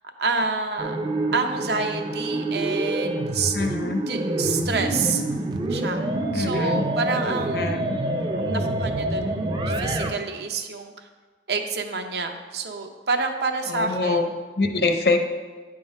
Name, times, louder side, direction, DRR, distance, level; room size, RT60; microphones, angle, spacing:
voice 1, 0.2-1.0 1.3-3.6 4.1-5.2 5.7-6.0 6.3-11.1 11.5-14.2, right 4 dB, 70° right, 5 dB, 0.7 m, -28 dB
sound 1, 0.8-10.1, right 1 dB, 25° right, 0.5 m, -26 dB
voice 2, 3.5-4.0 6.3-6.9 7.5-8.0 13.7-14.2 14.6-15.2, left 3 dB, 60° left, 6 dB, 0.7 m, -24 dB
9.5 x 3.7 x 5.3 m, 1.4 s
head